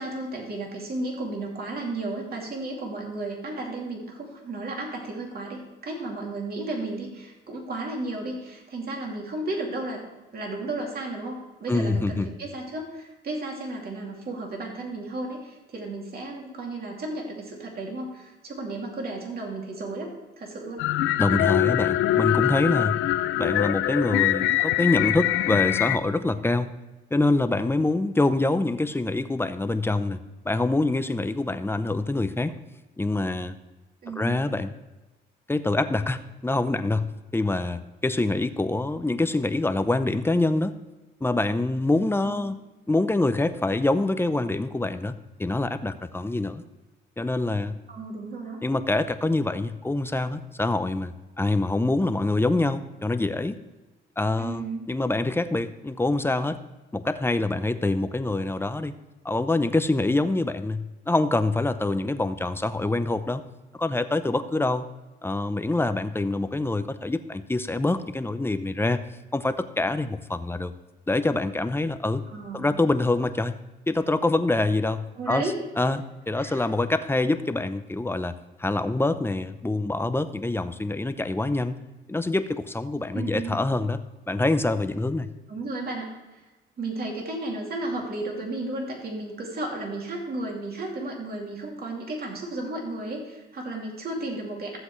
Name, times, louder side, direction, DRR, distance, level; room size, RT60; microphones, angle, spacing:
voice 1, 0.0-10.0 10.3-20.8 34.0-34.5 42.2-42.5 47.9-48.6 54.4-54.9 72.3-72.7 75.1-75.6 76.4-76.7 83.1-83.5 85.5-86.5 86.8-94.8, right 2 dB, 50° right, 0 dB, 2.7 m, -33 dB
voice 2, 11.7-12.3 21.2-23.0 23.4-26.7 27.1-32.5 33.0-33.6 34.2-34.7 35.5-37.1 37.3-40.7 41.2-42.6 42.9-45.1 45.4-46.6 47.2-47.7 48.6-53.6 54.2-56.6 56.9-58.9 59.2-63.4 63.8-64.9 65.2-69.0 69.3-70.7 71.1-72.2 72.5-73.5 73.9-75.4 75.8-81.7 82.1-84.0 84.3-85.3, left 2 dB, 10° left, 10 dB, 0.7 m, -25 dB
sound 1, 20.8-26.0, left 14 dB, 85° left, 0.5 m, -23 dB
14.5 x 7.8 x 3.2 m, 1.1 s
cardioid pair, 90°, 20 cm